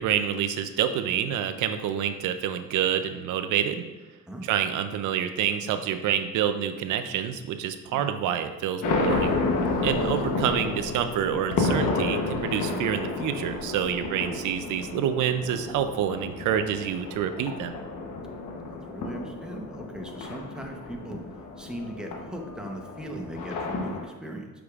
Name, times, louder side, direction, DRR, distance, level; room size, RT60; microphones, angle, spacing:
voice 1, 0.0-3.8 4.4-9.4 9.8-17.7, right 9 dB, 85° right, 9 dB, 0.5 m, -27 dB
sound 1, 8.8-24.1, left 3 dB, 85° left, 1.0 m, -31 dB
voice 2, 18.4-21.2 21.6-24.5, right 1 dB, 5° right, 2 dB, 0.8 m, -39 dB
7.9 x 4.9 x 2.4 m, 1.1 s
cardioid pair, 90°, 30 cm